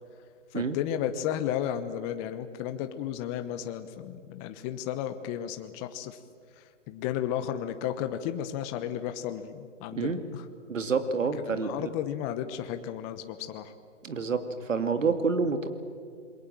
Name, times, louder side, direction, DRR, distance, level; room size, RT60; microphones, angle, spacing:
voice 1, 0.5-6.2 6.6-10.4 11.3-13.7, left 10 dB, 25° left, 9 dB, 1.1 m, -33 dB
voice 2, 10.7-11.9 14.0-15.7, right 4 dB, 85° right, 9 dB, 2.5 m, -28 dB
27.5 x 22.0 x 7.6 m, 2.3 s
hypercardioid pair, 145°, 37 cm